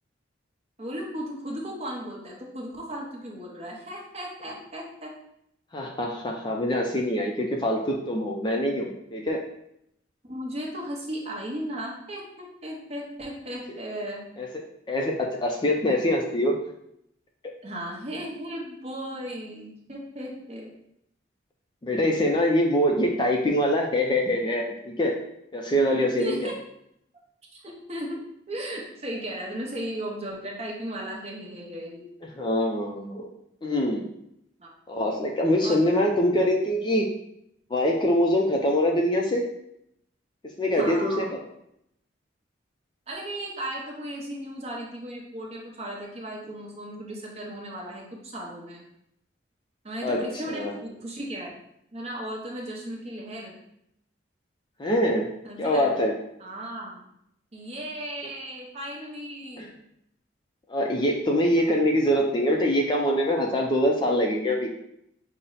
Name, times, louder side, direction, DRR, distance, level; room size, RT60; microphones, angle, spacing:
voice 1, 0.8-5.1 8.8-8.9 10.2-14.2 17.6-20.8 25.9-26.5 27.5-28.2 28.5-32.1 34.6-34.7 35.6-35.9 40.7-41.3 43.1-48.8 49.8-51.5 51.9-53.5 55.4-55.9 56.4-57.1 57.5-59.7, right 1 dB, 35° right, -2 dB, 0.8 m, -36 dB
voice 2, 5.7-9.4 14.4-14.5 14.9-16.6 21.8-25.2 25.5-26.5 32.4-33.3 33.6-34.1 34.9-37.1 37.7-39.5 40.6-41.4 50.0-50.7 54.8-56.1 59.6-59.7 60.7-64.7, equal, 25° left, 1 dB, 0.4 m, -24 dB
5.4 x 2.0 x 3.8 m, 0.76 s
head